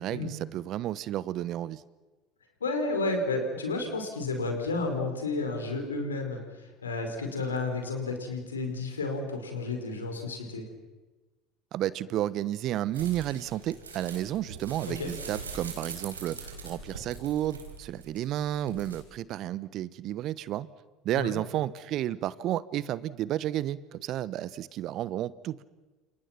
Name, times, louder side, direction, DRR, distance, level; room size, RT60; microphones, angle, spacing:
voice 1, 0.0-1.8 11.7-20.7 21.0-25.6, right 13 dB, 50° right, 18 dB, 1.1 m, -32 dB
voice 2, 2.6-10.6 14.9-15.1 21.1-21.4, left 3 dB, 85° left, 5 dB, 4.9 m, -32 dB
Plastic Pop, 12.9-19.0, right 4 dB, 90° right, 4.3 m, -42 dB
30.0 x 28.0 x 6.0 m, 1.2 s
hypercardioid pair, 70°, 0 cm